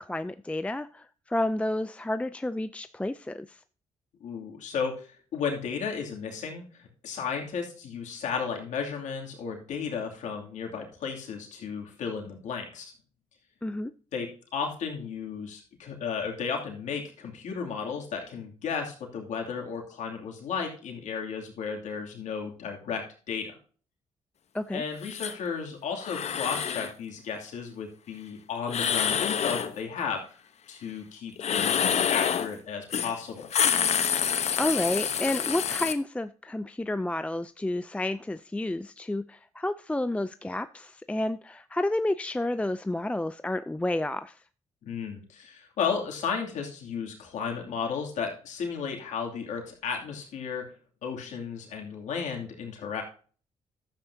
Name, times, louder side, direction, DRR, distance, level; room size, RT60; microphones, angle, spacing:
voice 1, 0.0-3.6 13.6-13.9 24.5-24.8 34.6-44.4, left 1 dB, 10° left, 12 dB, 0.4 m, -30 dB
voice 2, 4.2-12.9 14.1-23.6 24.7-30.4 30.7-33.5 44.8-50.7 51.0-53.0, left 6 dB, 75° left, 1 dB, 2.6 m, -34 dB
sound 1, 25.0-25.3 26.0-26.9 28.7-29.7 31.4-32.5 32.9-33.1 33.4-35.9, left 8 dB, 60° left, 1.0 m, -27 dB
12.0 x 8.6 x 2.8 m, 0.40 s
supercardioid pair, 65°, 13 cm